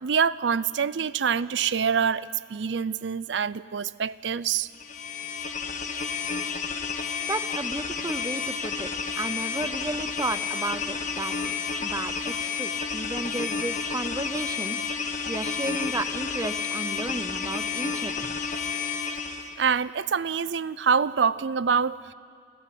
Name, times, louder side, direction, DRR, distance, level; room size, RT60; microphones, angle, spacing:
voice 1, 0.0-4.7 19.6-22.1, right 6 dB, 80° right, 18 dB, 0.5 m, -25 dB
sound 1, 4.7-19.5, left 5 dB, 45° left, 1.5 m, -31 dB
voice 2, 7.2-8.9 9.2-11.5 11.8-14.8 15.3-18.4, right 2 dB, 20° right, 13 dB, 0.7 m, -33 dB
30.0 x 12.5 x 9.3 m, 2.3 s
head